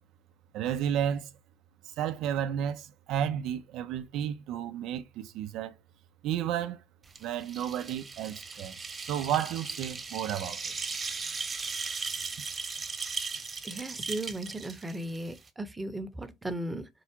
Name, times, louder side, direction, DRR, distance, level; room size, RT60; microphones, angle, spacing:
voice 1, 0.5-1.3 2.0-5.7 6.2-6.8 7.2-10.6, right 10 dB, 70° right, 0.6 m, -32 dB
sound 1, 7.1-15.5, right 4 dB, 30° right, 1.2 m, -37 dB
voice 2, 13.6-16.9, right 1 dB, 15° right, 0.9 m, -36 dB
4.7 x 2.4 x 4.4 m
supercardioid pair, 70°, 0 cm